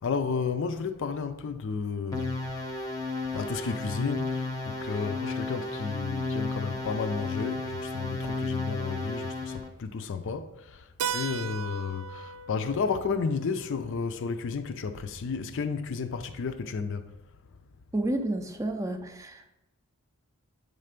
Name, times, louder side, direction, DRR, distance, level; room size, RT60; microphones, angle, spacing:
voice 1, 0.0-2.5 3.3-10.9 11.1-17.1, left 5 dB, 55° left, 0.4 m, -32 dB
sound 1, 2.1-9.7, left 2 dB, 15° left, 0.7 m, -33 dB
Keyboard (musical), 11.0-15.5, right 6 dB, 75° right, 0.4 m, -38 dB
voice 2, 17.9-19.5, right 1 dB, 15° right, 0.4 m, -31 dB
8.3 x 3.3 x 5.1 m
head